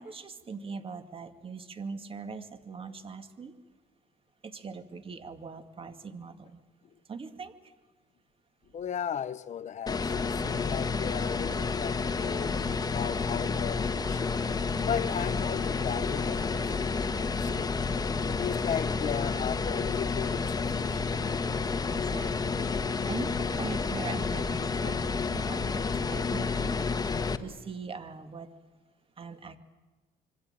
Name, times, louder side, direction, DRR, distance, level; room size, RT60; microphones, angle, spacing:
voice 1, 0.0-3.5 4.4-6.6 7.1-7.5 21.9-22.7 23.1-25.8 26.1-26.7 27.4-28.5 29.2-29.6, right 5 dB, 35° right, 2.2 m, -41 dB
voice 2, 8.7-12.6 12.9-17.7 18.4-21.1, left 8 dB, 45° left, 1.0 m, -36 dB
sound 1, 9.9-27.4, left 4 dB, 20° left, 1.4 m, -30 dB
26.5 x 23.5 x 8.9 m
cardioid pair, 110°, 17 cm